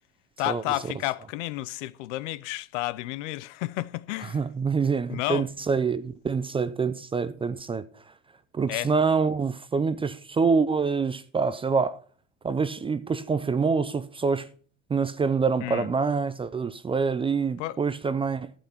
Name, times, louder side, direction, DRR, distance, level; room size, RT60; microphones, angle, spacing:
voice 1, 0.4-4.4 5.1-5.4 8.7-8.9 15.6-15.9 17.6-17.8, left 17 dB, 65° left, 0.7 m, -31 dB
voice 2, 4.3-7.9 8.5-12.0 12.4-14.5 14.9-18.5, right 5 dB, 15° right, 0.5 m, -26 dB
12.0 x 8.2 x 4.3 m
hypercardioid pair, 100°, 40 cm